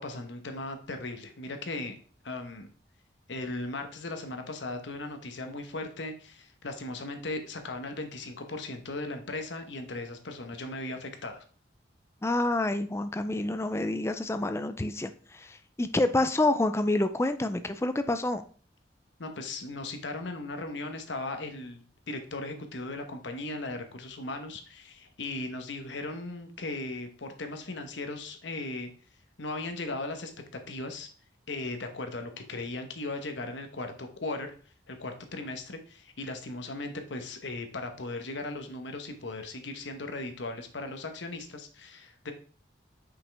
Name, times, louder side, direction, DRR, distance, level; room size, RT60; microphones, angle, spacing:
voice 1, 0.0-1.9 2.2-2.7 3.3-11.4 19.2-28.9 29.4-31.1 31.5-34.5 34.9-42.3, left 2 dB, 75° left, 6 dB, 1.0 m, -37 dB
voice 2, 12.2-18.4, left 2 dB, 15° left, 10 dB, 0.4 m, -28 dB
5.7 x 5.2 x 3.4 m, 0.42 s
head